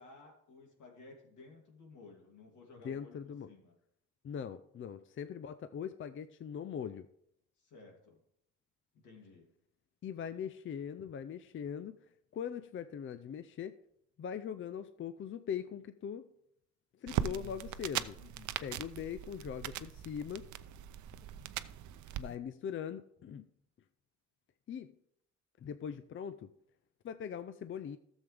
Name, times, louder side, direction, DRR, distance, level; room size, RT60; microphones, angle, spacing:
voice 1, 0.0-3.7 7.6-8.2 8.9-9.5 17.0-17.5 18.1-18.6, left 3 dB, 75° left, 1 dB, 2.8 m, -55 dB
voice 2, 2.8-3.5 4.2-7.1 10.0-12.0 12.3-13.7 14.2-16.3 17.0-18.2 18.6-20.5 22.2-23.5 24.7-24.9 25.6-26.5 27.0-28.0, left 8 dB, 40° left, 12 dB, 0.5 m, -41 dB
sound 1, 17.1-22.2, right 11 dB, 75° right, 0.6 m, -40 dB
13.5 x 7.2 x 3.4 m, 0.73 s
cardioid pair, 90°, 30 cm